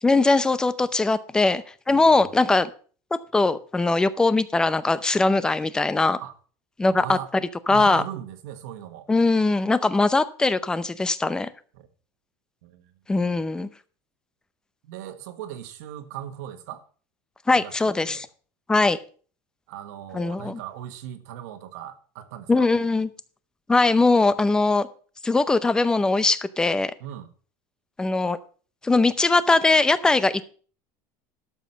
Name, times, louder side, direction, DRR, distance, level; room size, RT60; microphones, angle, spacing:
voice 1, 0.0-2.7 3.3-6.2 6.8-7.2 7.7-8.0 9.1-11.5 13.1-13.7 17.5-18.3 18.7-19.0 20.1-20.6 22.5-23.1 23.7-24.9 25.2-26.9 28.0-28.4 28.8-30.4, left 3 dB, 10° left, 0.6 m, -21 dB
voice 2, 6.9-7.3 7.7-9.1 11.7-11.9 12.6-12.9 14.8-16.8 17.5-18.2 19.7-22.7 27.0-27.3, right 11 dB, 85° right, 1.6 m, -38 dB
12.5 x 7.3 x 5.4 m
cardioid pair, 160°, 9 cm